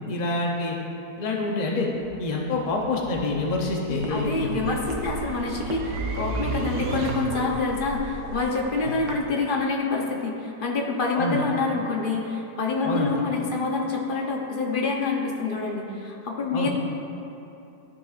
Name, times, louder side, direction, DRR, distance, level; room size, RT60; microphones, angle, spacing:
voice 1, 0.1-0.8 1.2-1.9 2.2-4.5 6.8-6.9 8.8-8.9 11.1-11.4 12.8-13.1 16.5-16.7, left 2 dB, 75° left, -1 dB, 0.4 m, -27 dB
sound 1, 2.0-7.6, right 3 dB, 65° right, 1.1 m, -34 dB
voice 2, 3.9-16.7, left 3 dB, 45° left, -1 dB, 0.7 m, -27 dB
sound 2, 3.9-9.2, right 3 dB, 85° right, 1.4 m, -39 dB
13.0 x 5.9 x 2.4 m, 2.9 s
omnidirectional pair, 1.8 m